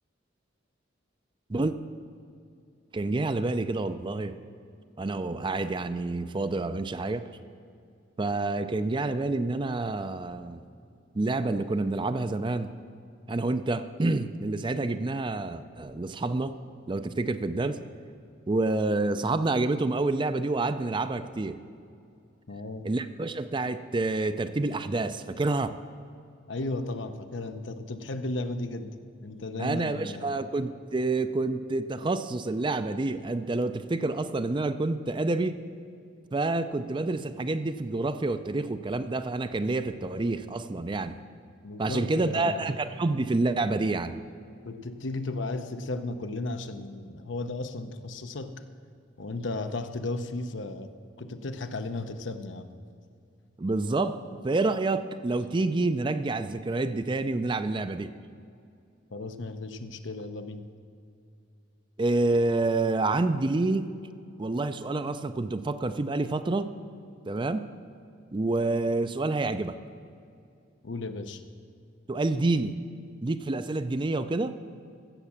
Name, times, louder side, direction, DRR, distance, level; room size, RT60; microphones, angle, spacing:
voice 1, 2.9-4.4 5.0-7.3 8.2-10.6 11.1-12.7 13.3-16.5 16.9-17.8 18.5-21.6 22.8-25.8 29.6-35.6 36.3-41.2 41.8-44.2 53.6-58.1 62.0-63.9 64.4-66.7 67.2-67.7 68.3-69.8 72.1-72.8 73.2-74.6, right 2 dB, 25° right, 11 dB, 0.4 m, -28 dB
voice 2, 22.5-22.9 26.5-30.4 41.6-42.7 44.6-48.6 49.2-52.7 59.1-60.7 70.8-71.4, left 2 dB, 75° left, 9 dB, 0.8 m, -35 dB
15.0 x 7.3 x 7.1 m, 2.5 s
head